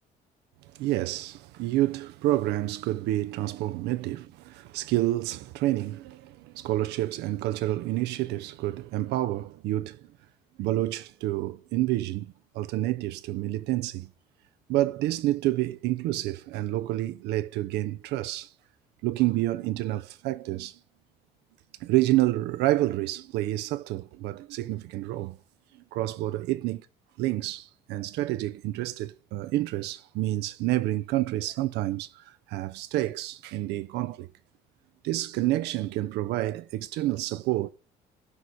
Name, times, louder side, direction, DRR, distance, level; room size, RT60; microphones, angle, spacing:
voice 1, 0.7-10.0 10.6-14.1 14.7-18.5 19.0-20.8 21.8-25.4 25.9-26.8 27.2-34.3 35.0-37.7, right 16 dB, 85° right, 0.5 m, -28 dB
12.5 x 4.9 x 4.1 m
cardioid pair, 110°, 17 cm